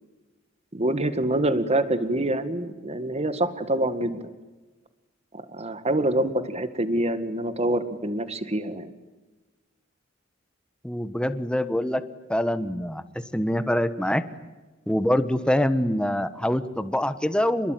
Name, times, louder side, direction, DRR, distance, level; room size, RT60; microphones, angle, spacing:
voice 1, 0.7-4.2 5.3-8.9, right 1 dB, 35° right, 11 dB, 1.9 m, -26 dB
voice 2, 10.8-12.0 12.3-13.0 13.3-14.2 14.9-17.7, left 1 dB, 5° left, 11 dB, 1.3 m, -24 dB
28.0 x 22.0 x 9.3 m, 1.2 s
head